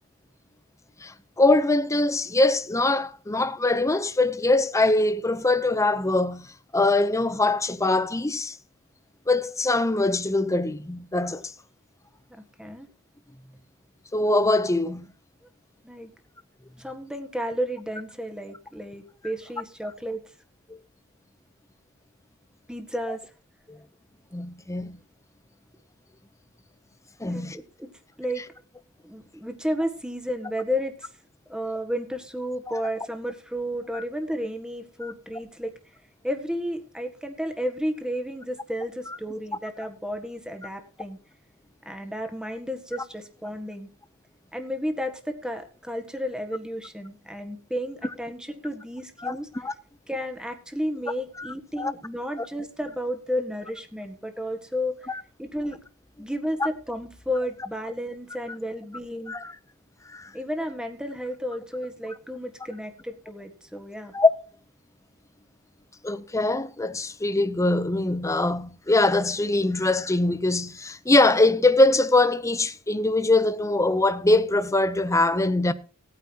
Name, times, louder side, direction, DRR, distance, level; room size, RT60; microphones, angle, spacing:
voice 1, 1.0-8.6 9.3-11.5 14.1-15.1 23.7-23.8 24.3-25.0 27.2-27.6 32.7-32.8 33.9-34.0 35.0-35.1 39.1-39.2 49.2-49.7 51.4-51.9 55.1-55.2 56.6-56.7 59.3-59.5 60.1-60.3 64.1-64.3 66.0-75.7, left 2 dB, 15° left, 0.7 m, -23 dB
voice 2, 12.3-12.9 15.8-16.1 16.8-20.2 22.7-23.2 27.2-27.9 28.2-28.4 29.0-31.1 31.5-35.7 36.2-41.2 41.8-43.9 44.5-49.5 50.1-55.1 55.4-55.8 56.2-59.3 60.3-64.1, equal, 5° right, 1.6 m, -32 dB
18.5 x 9.3 x 2.9 m
head